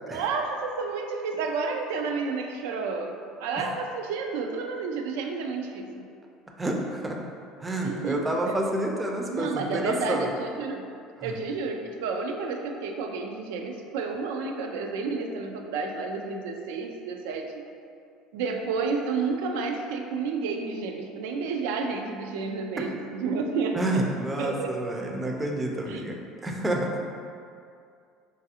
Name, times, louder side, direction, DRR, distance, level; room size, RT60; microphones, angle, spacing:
voice 1, 0.1-3.2 3.4-6.1 7.8-8.6 9.3-10.9 11.2-17.6 18.3-24.7 25.9-26.1, right 4 dB, 80° right, 4 dB, 0.3 m, -31 dB
voice 2, 6.6-7.2 7.6-10.3 11.2-11.3 23.7-26.2 26.4-26.9, right 1 dB, 15° right, 1 dB, 0.4 m, -29 dB
3.9 x 2.5 x 2.7 m, 2.4 s
supercardioid pair, 95°, 0 cm